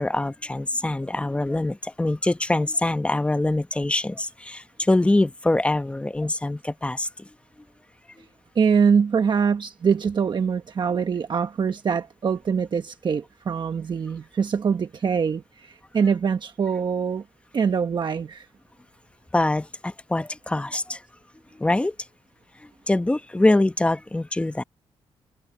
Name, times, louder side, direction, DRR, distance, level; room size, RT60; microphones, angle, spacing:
voice 1, 0.0-7.3 19.3-21.0 21.5-21.9 22.6-24.6, left 2 dB, 10° left, 0.9 m, -24 dB
voice 2, 8.5-17.2 17.5-18.5, right 6 dB, 45° right, 1.0 m, -23 dB
cardioid pair, 100°, 11 cm